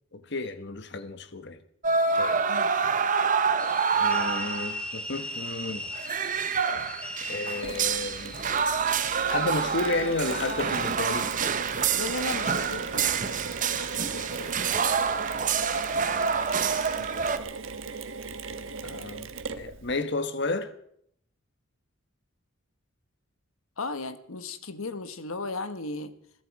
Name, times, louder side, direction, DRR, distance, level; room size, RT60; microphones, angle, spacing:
voice 1, 0.1-1.6 2.1-2.4 4.0-5.9 7.3-8.4 9.3-11.3 13.7-14.6 16.1-16.3 17.0-17.1 18.8-19.3 19.6-20.7, left 2 dB, 55° left, 1.3 m, -32 dB
sound 1, 1.8-4.8 5.1-5.2 5.5-17.4, right 6 dB, 40° right, 1.0 m, -27 dB
sound 2, 3.6-10.9, left 1 dB, 5° left, 2.0 m, -39 dB
Mechanisms, 7.6-20.0, right 4 dB, 70° right, 1.4 m, -38 dB
voice 2, 11.9-13.1 23.8-26.1, left 3 dB, 85° left, 1.4 m, -35 dB
21.5 x 14.0 x 4.8 m
head